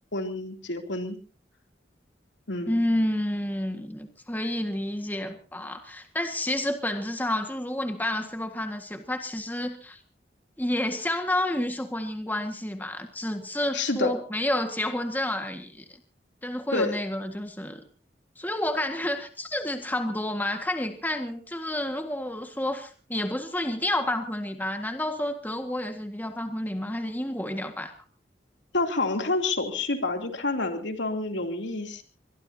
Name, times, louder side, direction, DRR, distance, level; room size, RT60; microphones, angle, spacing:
voice 1, 0.1-1.2 2.5-2.8 13.7-14.2 16.7-17.0 28.7-32.0, left 2 dB, 90° left, 4 dB, 3.0 m, -28 dB
voice 2, 2.7-10.0 10.6-15.8 16.4-17.8 18.4-27.9, left 1 dB, 10° left, 6 dB, 1.7 m, -30 dB
24.0 x 21.5 x 2.8 m, 0.37 s
head